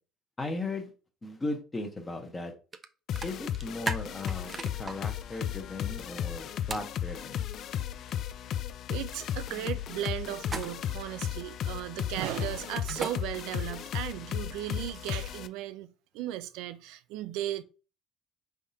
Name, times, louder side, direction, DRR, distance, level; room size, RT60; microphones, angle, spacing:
voice 1, 0.4-0.9 1.2-2.5 3.2-7.4, left 2 dB, 15° left, 0.9 m, -37 dB
sound 1, 2.7-2.9 3.2-4.9 6.7-6.9 10.4-11.0 12.7-13.1 14.5-15.4, right 4 dB, 20° right, 0.5 m, -37 dB
sound 2, 3.1-15.5, left 10 dB, 50° left, 0.3 m, -35 dB
voice 2, 8.4-17.6, right 13 dB, 85° right, 0.4 m, -36 dB
4.8 x 3.5 x 2.7 m
cardioid pair, 135°, 0 cm